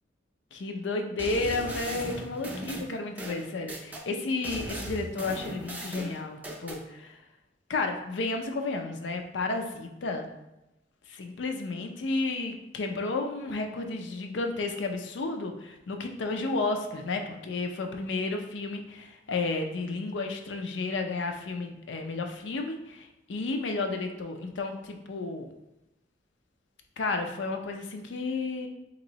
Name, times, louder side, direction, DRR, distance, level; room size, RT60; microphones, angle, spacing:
voice 1, 0.5-7.2 7.7-10.3 11.1-25.5 27.0-28.7, left 3 dB, 70° left, 5 dB, 0.4 m, -32 dB
sound 1, 1.2-4.0 4.4-6.8, right 1 dB, 10° right, 0.4 m, -38 dB
2.9 x 2.6 x 3.9 m, 0.95 s
head